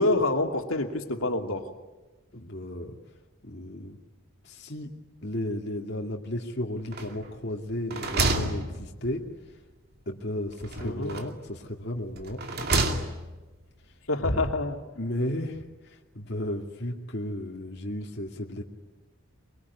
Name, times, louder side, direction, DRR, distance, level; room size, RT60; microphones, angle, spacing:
voice 1, 0.0-1.7 10.8-11.1 14.1-14.8, left 2 dB, 80° left, 3 dB, 2.7 m, -26 dB
voice 2, 2.3-3.0 3.4-4.0 4.4-4.9 5.2-9.2 10.1-12.4 14.2-14.4 15.0-18.6, left 1 dB, 50° left, 0 dB, 2.4 m, -34 dB
sound 1, 6.9-7.4 7.7-9.3 10.6-11.5 12.2-13.4, right 2 dB, 50° right, 2.5 m, -29 dB
23.5 x 23.0 x 9.6 m, 1.2 s
head